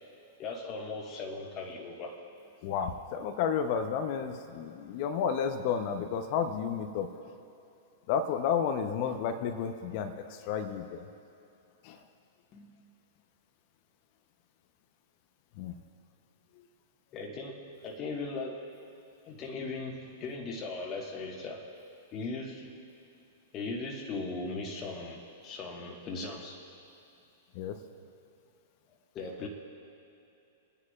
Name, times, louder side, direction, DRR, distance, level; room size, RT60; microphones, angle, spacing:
voice 1, 0.4-2.2 12.5-12.9 17.1-18.6 19.2-21.7 22.1-22.7 23.5-26.6 29.1-29.5, left 3 dB, 35° left, -2 dB, 1.4 m, -38 dB
voice 2, 2.6-7.1 8.1-11.1 11.8-12.0 15.6-15.8 27.5-27.8, left 7 dB, 50° left, 7 dB, 0.7 m, -31 dB
26.0 x 9.9 x 2.4 m, 2.7 s
hypercardioid pair, 110°, 0 cm